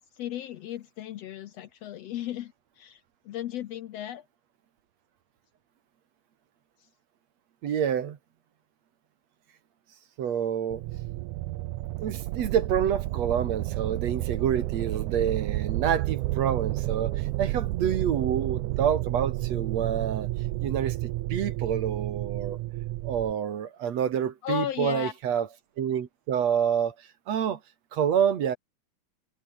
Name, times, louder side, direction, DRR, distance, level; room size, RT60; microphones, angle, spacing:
voice 1, 0.1-4.2 24.4-25.1, left 11 dB, 70° left, 1.7 m, -35 dB
voice 2, 7.6-8.2 10.2-10.8 12.0-20.3 20.6-22.6 23.0-25.5 25.8-27.6 27.9-28.6, right 8 dB, 60° right, 2.7 m, -28 dB
sound 1, 10.7-23.3, right 18 dB, 80° right, 2.1 m, -31 dB
omnidirectional pair, 3.5 m